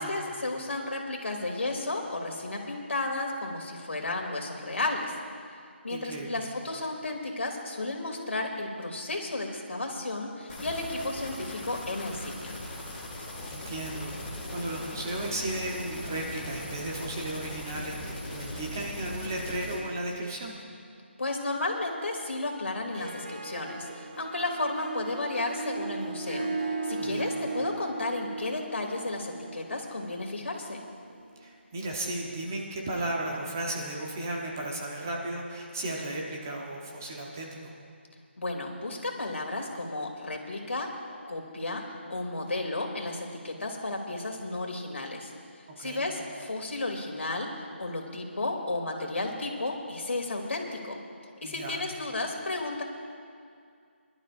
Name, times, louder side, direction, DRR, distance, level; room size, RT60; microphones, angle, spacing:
voice 1, 0.0-5.2 5.8-12.5 21.2-26.5 26.8-30.8 38.4-40.9 41.3-45.3 45.8-51.0 51.4-52.8, left 2 dB, 75° left, 1 dB, 2.5 m, -33 dB
voice 2, 5.9-6.5 13.5-20.6 27.0-27.3 31.4-37.7 45.8-46.1 51.4-51.8, right 1 dB, 15° right, -1 dB, 0.8 m, -35 dB
sound 1, 10.5-19.8, left 1 dB, 5° left, 1.2 m, -39 dB
Harp, 22.8-31.4, right 3 dB, 40° right, 0.9 m, -37 dB
24.5 x 12.0 x 2.5 m, 2.3 s
hypercardioid pair, 180°, 7 cm